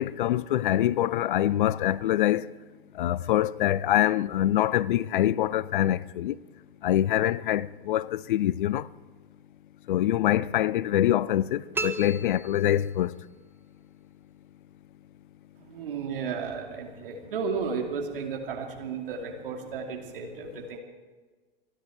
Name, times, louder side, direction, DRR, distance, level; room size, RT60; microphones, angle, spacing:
voice 1, 0.0-2.5 3.0-6.4 6.8-8.9 9.9-13.1, left 12 dB, 60° left, 0.5 m, -25 dB
sound 1, 11.7-13.3, right 3 dB, 5° right, 0.9 m, -35 dB
voice 2, 15.6-20.8, right 5 dB, 65° right, 2.7 m, -33 dB
27.5 x 10.0 x 4.6 m
figure-of-eight pair, 100°, 29 cm